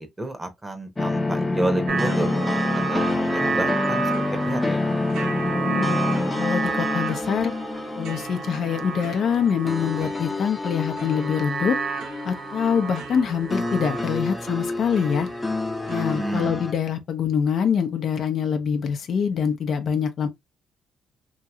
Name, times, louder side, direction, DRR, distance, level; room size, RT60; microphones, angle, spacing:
voice 1, 0.0-2.3 2.7-4.8 16.1-16.6, right 1 dB, 15° right, 0.9 m, -30 dB
sound 1, 1.0-16.7, left 2 dB, 15° left, 0.6 m, -28 dB
sound 2, 1.9-16.5, right 5 dB, 80° right, 0.9 m, -32 dB
voice 2, 5.6-6.0 6.4-7.5 8.0-11.8 12.2-15.3 15.9-20.3, left 7 dB, 65° left, 0.6 m, -24 dB
2.9 x 2.7 x 2.3 m
cardioid pair, 90°, 0 cm